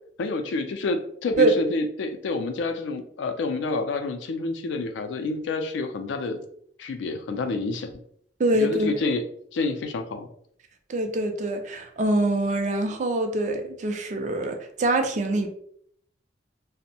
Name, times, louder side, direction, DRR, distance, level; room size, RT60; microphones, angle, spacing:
voice 1, 0.2-6.4 6.8-8.0 8.5-9.2 9.5-10.3, left 3 dB, 85° left, 6 dB, 0.4 m, -28 dB
voice 2, 8.4-8.9 10.9-15.5, right 1 dB, 40° right, 5 dB, 0.4 m, -24 dB
2.6 x 2.0 x 2.7 m, 0.66 s
head